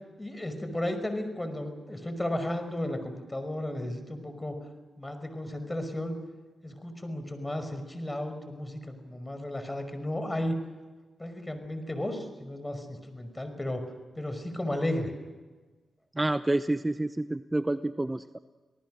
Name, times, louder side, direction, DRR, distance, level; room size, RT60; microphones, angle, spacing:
voice 1, 0.2-4.5 5.0-6.1 6.6-10.6 11.2-13.8 14.2-15.1, left 1 dB, 20° left, 8 dB, 5.5 m, -34 dB
voice 2, 16.2-18.4, right 2 dB, 20° right, 12 dB, 0.8 m, -28 dB
28.5 x 18.5 x 6.5 m, 1.3 s
supercardioid pair, 45°, 0 cm